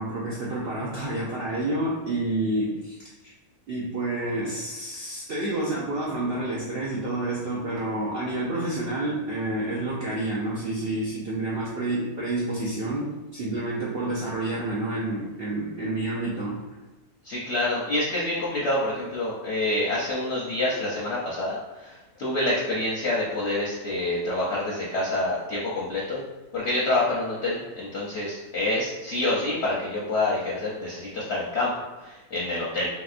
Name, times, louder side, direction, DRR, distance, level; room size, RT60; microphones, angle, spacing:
voice 1, 0.0-3.0 3.2-3.3 3.7-16.6, right 2 dB, 75° right, -6 dB, 0.5 m, -29 dB
voice 2, 17.2-26.2 26.5-31.7 32.0-32.9, left 2 dB, 60° left, -6 dB, 0.7 m, -27 dB
3.2 x 2.8 x 2.4 m, 1.1 s
omnidirectional pair, 1.6 m